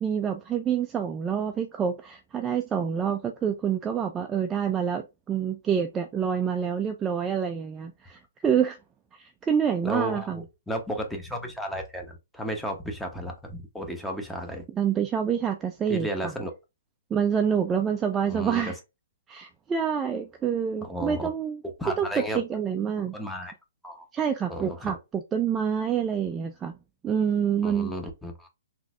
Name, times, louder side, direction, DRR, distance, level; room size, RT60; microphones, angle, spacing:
voice 1, 0.0-8.8 9.2-10.4 14.7-16.1 17.1-18.8 19.3-21.6 22.0-23.2 24.1-26.8 27.0-27.9, right 7 dB, 15° right, 0.3 m, -27 dB
voice 2, 9.8-14.7 15.9-16.5 18.3-18.7 20.8-21.3 21.8-22.4 23.1-23.5 23.8-24.1 24.5-25.0 27.6-28.5, equal, 5° left, 0.7 m, -33 dB
3.8 x 2.6 x 2.4 m
hypercardioid pair, 135°, 0 cm